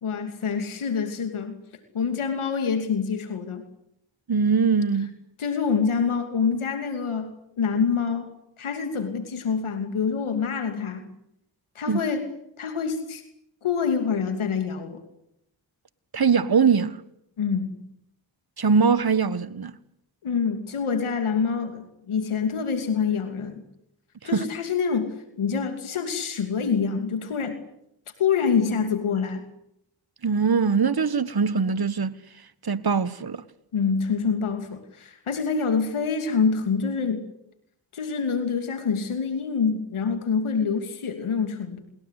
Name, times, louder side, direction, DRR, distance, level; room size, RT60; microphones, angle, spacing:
voice 1, 0.0-1.6 1.9-3.6 5.4-7.3 7.6-11.1 11.7-12.3 12.6-13.2 13.6-15.0 17.4-17.7 20.2-23.6 24.2-25.1 25.4-27.6 28.2-29.4 33.7-37.2 37.9-41.8, left 6 dB, 85° left, 2.8 m, -26 dB
voice 2, 4.3-5.2 11.9-12.0 16.1-17.0 18.6-19.7 24.2-24.5 30.2-32.2 32.6-33.4, right 5 dB, 50° right, 1.5 m, -22 dB
27.5 x 21.5 x 8.3 m
cardioid pair, 45°, 48 cm